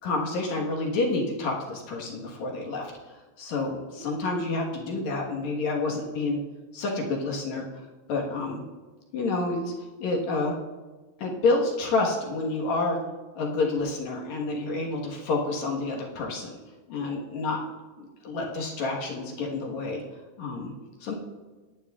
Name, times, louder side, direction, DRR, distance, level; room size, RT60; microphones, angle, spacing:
voice 1, 0.0-2.9 3.4-6.4 6.7-7.6 8.1-8.6 9.1-9.7 10.0-10.5 11.2-13.0 13.4-16.6 16.9-17.6 18.0-20.0 20.4-20.7 21.0-21.1, left 3 dB, 60° left, -1 dB, 2.1 m, -28 dB
17.5 x 11.0 x 2.4 m, 1.3 s
omnidirectional pair, 4.8 m